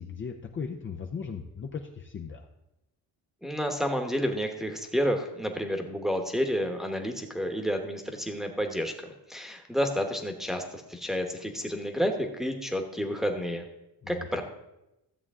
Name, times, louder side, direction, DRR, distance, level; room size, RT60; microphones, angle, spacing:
voice 1, 0.0-2.5 14.0-14.4, left 6 dB, 30° left, 2 dB, 0.6 m, -37 dB
voice 2, 3.4-13.7 14.1-14.4, equal, ahead, 3 dB, 1.1 m, -30 dB
13.5 x 7.7 x 3.7 m, 0.91 s
cardioid pair, 130°, 40 cm